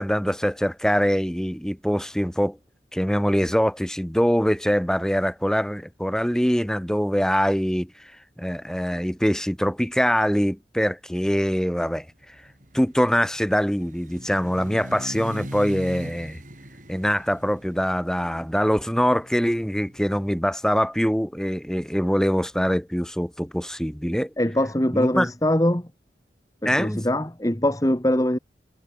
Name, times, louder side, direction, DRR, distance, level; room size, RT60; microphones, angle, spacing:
voice 1, 0.0-2.6 2.9-7.9 8.4-12.1 12.7-16.4 16.9-24.3 24.9-25.3 26.6-27.0, equal, 5° left, 4.2 m, -23 dB
sound 1, 12.2-20.2, equal, 45° right, 6.1 m, -41 dB
voice 2, 24.4-25.9 26.6-28.4, left 1 dB, 20° left, 1.8 m, -22 dB
head